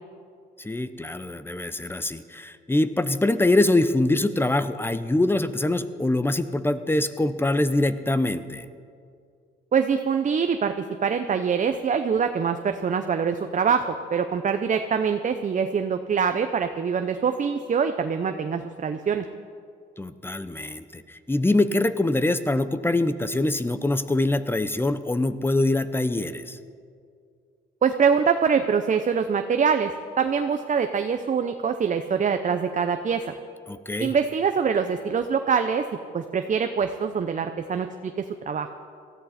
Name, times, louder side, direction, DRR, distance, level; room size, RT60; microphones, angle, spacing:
voice 1, 0.6-8.7 20.0-26.6 33.7-34.2, left 2 dB, 10° left, 12 dB, 0.7 m, -24 dB
voice 2, 9.7-13.8 14.1-19.2 27.8-33.3 34.0-35.9 36.1-37.9 38.5-38.7, right 6 dB, 40° right, 7 dB, 0.7 m, -24 dB
18.5 x 14.0 x 4.3 m, 2.3 s
cardioid pair, 90°, 20 cm